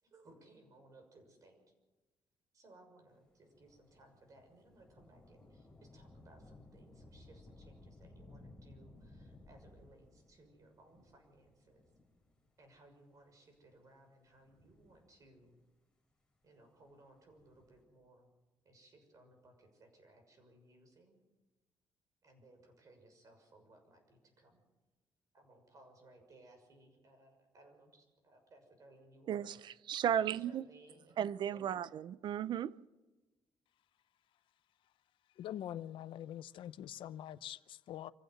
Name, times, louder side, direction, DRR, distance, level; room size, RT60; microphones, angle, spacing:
voice 1, 0.0-1.6 2.5-11.9 12.6-15.6 16.4-18.3 18.6-21.2 22.2-24.6 25.3-29.6 30.1-31.2 31.5-31.8, right 2 dB, 40° right, 4 dB, 6.5 m, -62 dB
Thunder / Rain, 3.5-12.5 13.2-13.3 14.3-15.5 17.1-17.8, left 2 dB, 10° left, 5.1 m, -59 dB
voice 2, 29.9-30.6 31.2-32.7, right 9 dB, 60° right, 18 dB, 0.6 m, -34 dB
voice 3, 35.3-38.1, left 11 dB, 70° left, 15 dB, 0.7 m, -44 dB
26.0 x 15.5 x 7.9 m, 1.1 s
cardioid pair, 155°, 9 cm